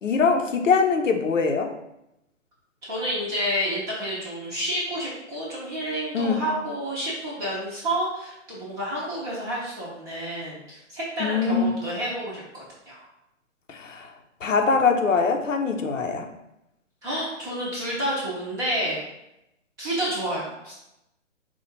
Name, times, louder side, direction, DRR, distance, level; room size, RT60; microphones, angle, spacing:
voice 1, 0.0-1.7 6.1-6.4 11.2-11.7 13.7-14.1 14.4-16.3, left 5 dB, 85° left, 4 dB, 0.8 m, -22 dB
voice 2, 2.8-13.0 17.0-19.0 19.8-20.7, equal, 10° right, -7 dB, 0.5 m, -29 dB
4.4 x 2.3 x 4.4 m, 0.86 s
hypercardioid pair, 135°, 37 cm